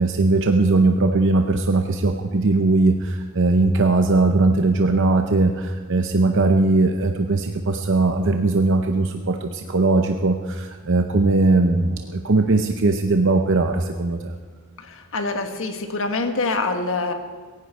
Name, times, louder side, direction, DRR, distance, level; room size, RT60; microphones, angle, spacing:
voice 1, 0.0-14.3, right 3 dB, 60° right, 5 dB, 0.8 m, -19 dB
voice 2, 14.8-17.1, left 3 dB, 65° left, 6 dB, 1.5 m, -25 dB
18.0 x 15.5 x 4.4 m, 1.5 s
head